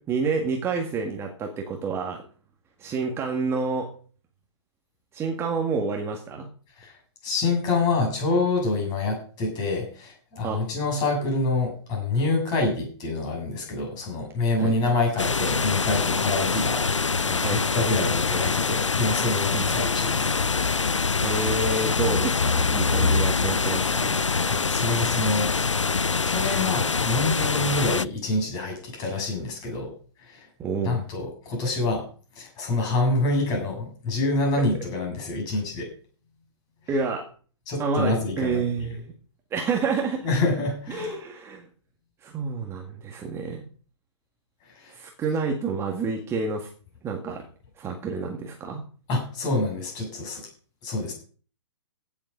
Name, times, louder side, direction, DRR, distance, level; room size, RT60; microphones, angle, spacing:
voice 1, 0.0-2.2 2.8-3.9 5.1-6.5 10.4-10.6 14.6-14.7 17.4-18.1 19.5-19.7 21.2-24.2 30.6-31.0 36.9-37.3 37.8-39.1 39.5-40.3 40.9-41.7 42.2-43.7 44.9-46.7 47.0-47.5 47.8-48.8, right 4 dB, 15° right, 2 dB, 1.8 m, -29 dB
voice 2, 7.2-20.4 24.5-25.5 26.3-29.9 30.2-30.5 30.8-32.1 32.3-35.9 37.7-38.6 40.2-41.1 44.6-45.0 49.1-50.4 50.8-51.1, left 2 dB, 25° left, 1 dB, 7.0 m, -26 dB
sound 1, 15.2-28.0, left 4 dB, 90° left, 0.5 m, -24 dB
16.0 x 7.4 x 5.4 m, 0.41 s
figure-of-eight pair, 125°, 15 cm